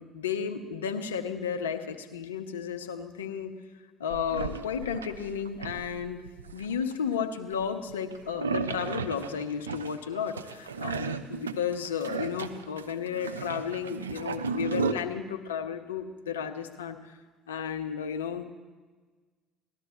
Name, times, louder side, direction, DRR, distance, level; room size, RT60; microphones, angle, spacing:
voice 1, 0.0-3.5 4.0-6.2 6.5-17.0 17.5-18.5, left 7 dB, 85° left, 7 dB, 0.7 m, -33 dB
sound 1, 4.1-6.9 7.5-14.9, right 5 dB, 90° right, 0.4 m, -34 dB
18.0 x 12.5 x 3.0 m, 1.4 s
hypercardioid pair, 55°, 0 cm